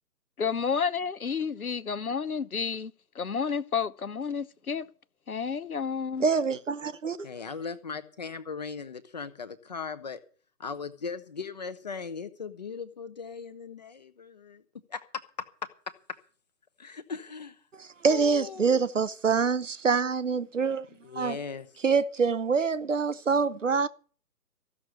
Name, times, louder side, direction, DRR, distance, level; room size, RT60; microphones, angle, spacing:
voice 1, 0.4-4.9 5.3-6.2, left 6 dB, 60° left, 0.9 m, -31 dB
voice 2, 6.2-7.3 17.8-20.8 21.2-21.4 21.8-23.9, right 5 dB, 50° right, 0.8 m, -25 dB
voice 3, 7.2-10.2 10.6-14.6 14.9-15.0 15.9-16.0 16.8-17.6 18.1-18.8 21.0-21.7, left 5 dB, 25° left, 0.9 m, -38 dB
15.0 x 6.6 x 8.3 m
figure-of-eight pair, 140°, 49 cm